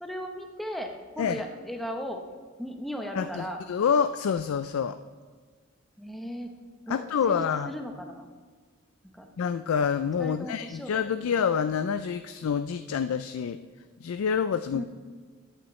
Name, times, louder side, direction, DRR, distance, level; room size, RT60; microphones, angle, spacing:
voice 1, 0.0-2.2 2.6-3.6 6.0-6.5 6.9-8.3 9.1-9.3 10.2-10.9 14.7-14.8, equal, ahead, 2 dB, 0.9 m, -36 dB
voice 2, 3.1-5.0 6.9-7.7 9.4-13.6 14.0-14.8, left 7 dB, 80° left, 10 dB, 0.4 m, -27 dB
14.0 x 8.8 x 3.1 m, 1.5 s
head